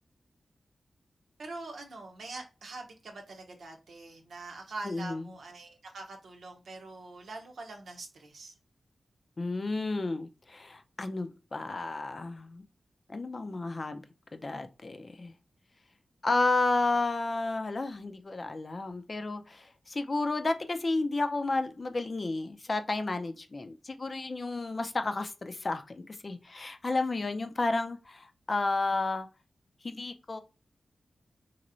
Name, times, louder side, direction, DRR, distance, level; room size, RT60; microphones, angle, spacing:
voice 1, 1.4-8.5, right 3 dB, 80° right, 0.7 m, -44 dB
voice 2, 4.8-5.3 9.4-12.6 13.1-14.0 14.3-15.3 16.2-29.3 29.8-30.4, left 3 dB, 50° left, 0.5 m, -32 dB
3.1 x 2.9 x 2.5 m
cardioid pair, 40°, 0 cm